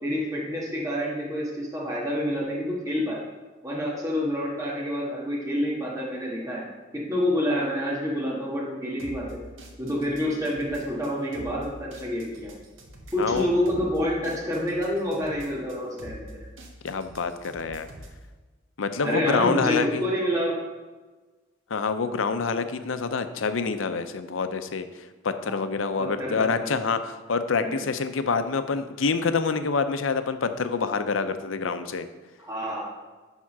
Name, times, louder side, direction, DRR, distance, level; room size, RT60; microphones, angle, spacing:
voice 1, 0.0-3.2 3.6-6.7 6.9-9.4 9.8-12.6 13.1-16.4 19.0-20.5 25.5-25.6 26.0-26.7 27.6-27.8 32.4-32.9, equal, 15° right, -4 dB, 1.6 m, -28 dB
sound 1, 9.0-18.2, right 1 dB, 90° right, 1.4 m, -45 dB
voice 2, 16.8-17.9 18.8-20.1 21.7-32.1, left 4 dB, 85° left, 10 dB, 0.6 m, -27 dB
11.0 x 3.7 x 6.0 m, 1.3 s
head